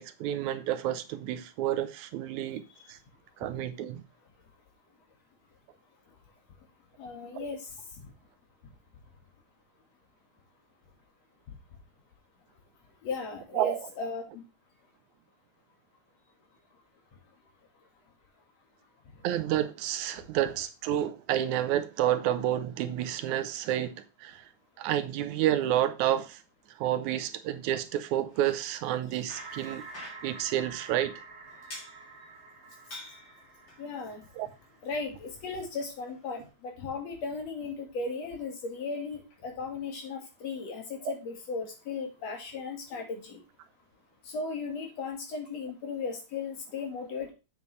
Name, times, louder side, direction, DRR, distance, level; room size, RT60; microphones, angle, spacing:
voice 1, 0.0-2.6 2.9-3.0 3.4-4.0 7.3-7.5 13.5-13.9 19.2-24.5 24.8-26.4 26.7-29.8 30.2-31.2 34.4-34.5 41.0-41.1, right 12 dB, 85° right, 2.1 m, -30 dB
voice 2, 7.0-7.7 13.0-14.4 33.8-34.3 34.8-43.4 44.3-47.3, left 4 dB, 65° left, 3.1 m, -36 dB
Bicycle, 28.2-36.5, left 1 dB, 40° left, 3.6 m, -51 dB
sound 1, 29.4-35.1, right 4 dB, 60° right, 2.5 m, -48 dB
8.1 x 6.8 x 3.2 m
omnidirectional pair, 3.4 m